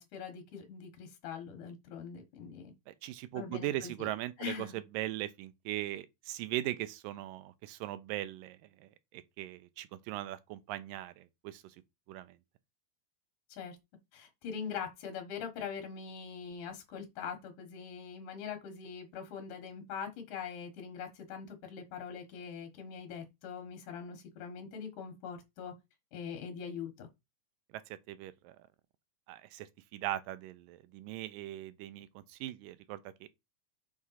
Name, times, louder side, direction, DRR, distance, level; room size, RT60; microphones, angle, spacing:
voice 1, 0.0-2.7 3.3-4.1 4.4-4.8 13.5-13.8 14.1-25.7 26.1-27.1, left 7 dB, 70° left, 2.7 m, -42 dB
voice 2, 2.9-11.8 12.1-12.4 27.7-28.6 29.3-33.3, right 14 dB, 85° right, 2.4 m, -40 dB
6.3 x 3.6 x 5.6 m
omnidirectional pair, 3.9 m